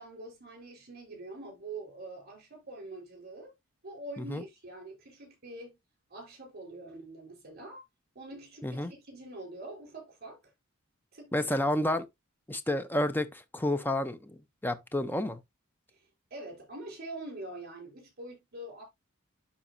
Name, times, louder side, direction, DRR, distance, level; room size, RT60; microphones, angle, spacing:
voice 1, 0.0-3.5 3.8-5.8 6.1-7.8 8.1-10.4 11.1-11.5 15.9-16.0 16.3-18.8, right 2 dB, 50° right, 4.6 m, -44 dB
voice 2, 11.3-12.0 12.5-15.4, left 1 dB, 10° left, 0.8 m, -30 dB
12.0 x 4.2 x 2.7 m
head